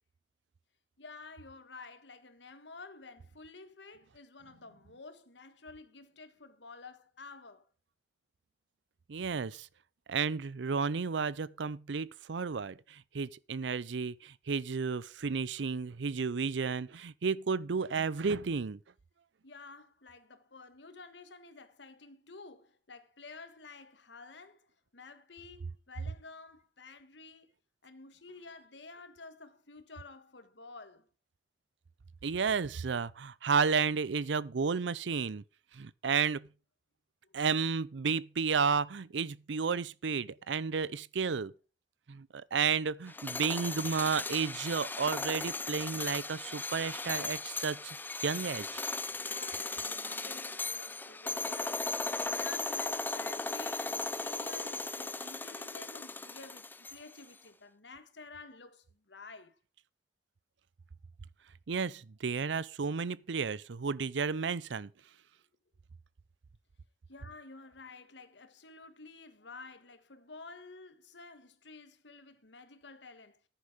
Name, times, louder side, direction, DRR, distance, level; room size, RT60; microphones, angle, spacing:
voice 1, 1.0-7.7 19.4-27.5 27.8-31.1 37.2-37.4 49.2-59.6 67.1-73.4, left 3 dB, 75° left, 1.6 m, -51 dB
voice 2, 9.1-9.7 10.1-18.8 32.2-35.4 35.7-36.5 37.3-41.5 42.1-48.0 48.2-48.8 61.7-64.9, right 5 dB, 80° right, 0.6 m, -32 dB
sound 1, 43.1-57.2, left 3 dB, 10° left, 0.5 m, -37 dB
10.0 x 9.9 x 5.0 m
head